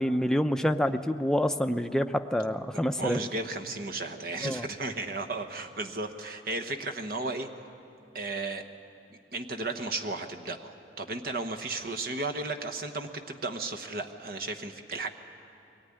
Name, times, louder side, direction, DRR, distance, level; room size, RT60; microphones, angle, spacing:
voice 1, 0.0-3.2 4.4-4.6, equal, 5° left, 7 dB, 0.6 m, -27 dB
voice 2, 3.0-7.5 8.1-8.7 9.3-15.1, right 2 dB, 55° right, 5 dB, 1.1 m, -34 dB
23.0 x 18.5 x 9.9 m, 2.7 s
head